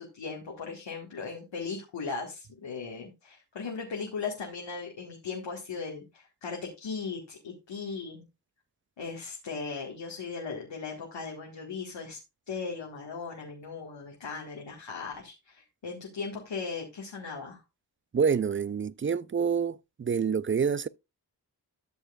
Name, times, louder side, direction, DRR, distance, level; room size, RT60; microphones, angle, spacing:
voice 1, 0.0-8.2 9.0-12.2 12.5-17.6, left 5 dB, 90° left, 1.8 m, -38 dB
voice 2, 18.1-20.9, right 6 dB, 30° right, 0.4 m, -27 dB
13.0 x 6.7 x 2.4 m
cardioid pair, 45°, 43 cm